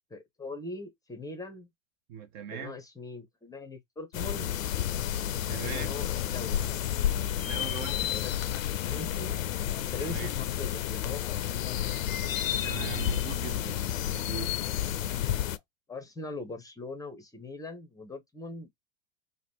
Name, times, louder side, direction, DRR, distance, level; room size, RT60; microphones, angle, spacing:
voice 1, 0.1-1.7 2.5-4.5 5.6-6.7 7.9-9.3 9.9-12.0 15.4-15.6 15.9-18.7, left 2 dB, 10° left, 0.7 m, -41 dB
voice 2, 2.1-2.8 5.5-5.9 7.4-8.1 10.0-10.3 12.6-13.8 14.1-14.5, right 8 dB, 40° right, 0.7 m, -40 dB
sound 1, 4.1-15.6, left 11 dB, 75° left, 0.5 m, -31 dB
3.0 x 2.6 x 4.3 m
hypercardioid pair, 95°, 40 cm